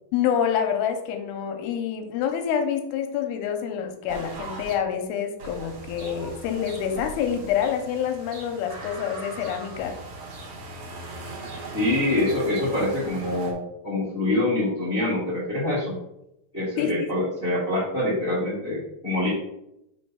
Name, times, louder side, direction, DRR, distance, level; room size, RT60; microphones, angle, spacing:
voice 1, 0.1-9.9 16.8-17.1, left 8 dB, 85° left, 6 dB, 2.6 m, -27 dB
sound 1, 4.1-4.7 5.4-13.5, right 2 dB, 70° right, 1.4 m, -39 dB
voice 2, 11.7-16.0 16.5-19.3, left 1 dB, 40° left, -7 dB, 1.1 m, -25 dB
5.3 x 4.0 x 5.6 m, 0.83 s
omnidirectional pair, 4.7 m